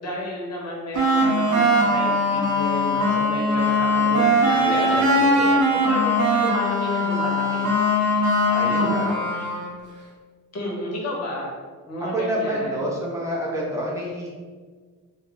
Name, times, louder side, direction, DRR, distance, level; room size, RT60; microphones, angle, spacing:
voice 1, 0.0-8.9 9.3-9.5 10.5-11.5 11.9-12.8, equal, 50° left, -3 dB, 0.7 m, -32 dB
sound 1, 0.9-9.8, equal, 60° right, 0.7 m, -20 dB
voice 2, 4.6-5.6 8.4-9.2 12.1-14.3, right 1 dB, 10° right, -5 dB, 0.6 m, -28 dB
2.4 x 2.0 x 3.6 m, 1.5 s
wide cardioid pair, 160°, 33 cm